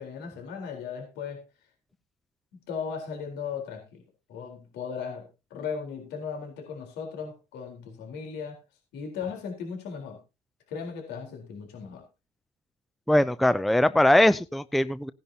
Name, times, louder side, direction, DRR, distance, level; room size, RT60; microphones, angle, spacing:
voice 1, 0.0-1.4 2.7-4.0 4.3-8.6 8.9-10.2 10.7-12.0, left 6 dB, 85° left, 2 dB, 4.0 m, -37 dB
voice 2, 13.1-15.1, left 1 dB, ahead, 15 dB, 0.5 m, -21 dB
17.0 x 10.5 x 2.9 m, 0.28 s
cardioid pair, 110°, 17 cm